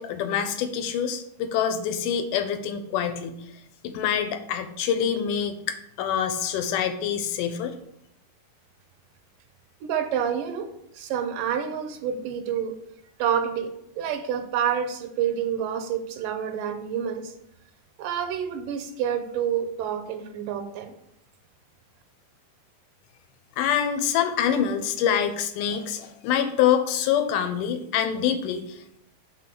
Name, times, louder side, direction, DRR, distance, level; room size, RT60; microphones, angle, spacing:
voice 1, 0.0-3.5 3.8-7.7 23.6-29.0, left 8 dB, 80° left, 8 dB, 2.1 m, -26 dB
voice 2, 9.8-10.7 10.9-12.7 13.2-17.3 18.0-20.9, right 8 dB, 85° right, 8 dB, 2.3 m, -28 dB
6.0 x 3.8 x 5.9 m, 0.76 s
omnidirectional pair, 3.8 m